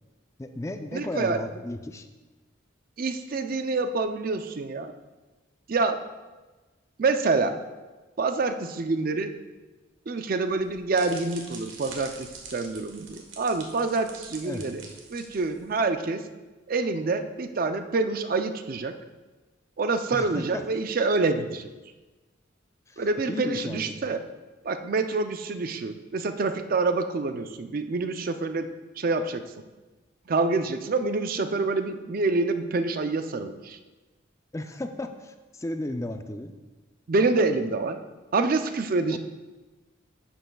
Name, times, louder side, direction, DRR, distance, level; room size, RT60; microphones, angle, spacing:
voice 1, 0.4-2.1 14.4-14.7 20.1-20.6 22.9-24.0 34.5-36.5 39.1-39.2, left 1 dB, 15° left, 7 dB, 0.4 m, -34 dB
voice 2, 0.9-1.4 3.0-4.9 5.7-6.0 7.0-7.6 8.2-9.3 10.1-14.8 15.1-16.2 16.7-18.9 19.8-21.7 23.0-24.2 24.6-28.7 29.0-29.4 30.3-33.8 37.1-38.0 38.3-39.2, right 3 dB, 45° right, 8 dB, 0.4 m, -27 dB
sound 1, 10.5-15.8, right 4 dB, 80° right, 1.3 m, -45 dB
11.0 x 7.8 x 2.3 m, 1.2 s
head